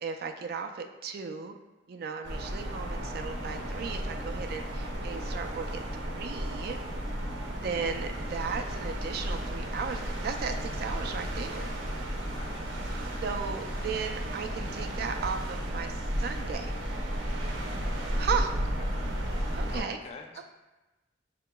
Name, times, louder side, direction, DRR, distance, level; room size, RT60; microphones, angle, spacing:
voice 1, 0.0-1.5 1.9-6.8 7.6-11.8 13.2-16.7 18.2-18.5 19.6-20.0, right 6 dB, 55° right, 6 dB, 0.3 m, -35 dB
sound 1, 2.2-19.8, equal, 90° right, 0.7 m, -33 dB
voice 2, 4.7-5.2 12.2-12.8 17.4-17.8 18.8-19.2 19.7-20.4, left 3 dB, 35° left, 2 dB, 0.4 m, -48 dB
6.0 x 2.8 x 2.2 m, 1.1 s
head